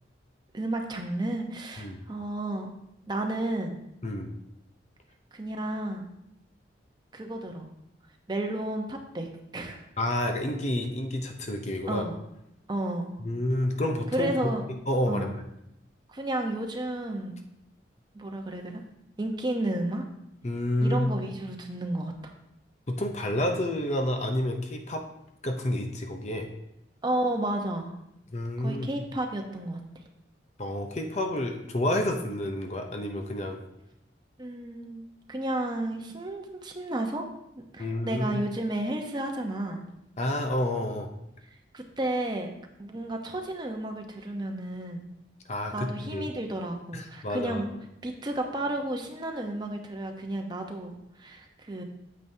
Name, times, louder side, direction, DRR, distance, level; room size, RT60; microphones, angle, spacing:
voice 1, 0.5-2.7 3.1-3.8 5.3-6.1 7.1-7.7 8.3-9.3 9.5-9.9 11.9-12.2 12.7-13.2 14.1-14.6 15.1-15.3 16.1-17.4 18.1-18.8 19.2-20.1 20.8-22.3 27.0-28.0 28.6-30.0 34.4-35.0 35.3-37.3 37.6-39.8 41.7-42.5 42.8-45.1 45.7-47.7 48.0-51.8, right 1 dB, 25° right, 3 dB, 0.8 m, -32 dB
voice 2, 10.0-12.0 13.2-14.5 14.9-15.4 20.4-21.1 22.9-25.0 25.4-26.5 28.3-28.9 30.6-33.6 37.8-38.3 40.2-41.1 45.5-46.3 46.9-47.6, left 1 dB, 40° left, 4 dB, 0.7 m, -29 dB
9.0 x 7.7 x 2.7 m, 0.82 s
head